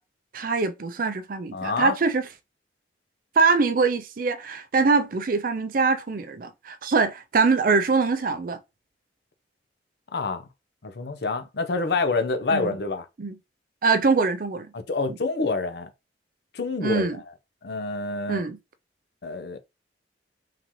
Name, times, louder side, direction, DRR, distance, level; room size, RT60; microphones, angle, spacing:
voice 1, 0.3-2.3 3.4-8.6 12.5-12.7 13.2-13.4 13.8-14.7 16.8-17.2 18.3-18.6, right 4 dB, 50° right, 0.5 m, -23 dB
voice 2, 1.5-1.9 10.1-10.5 10.8-13.0 14.7-15.9 16.5-17.2 17.6-18.4 19.2-19.6, left 3 dB, 65° left, 0.6 m, -27 dB
3.7 x 2.8 x 3.0 m
head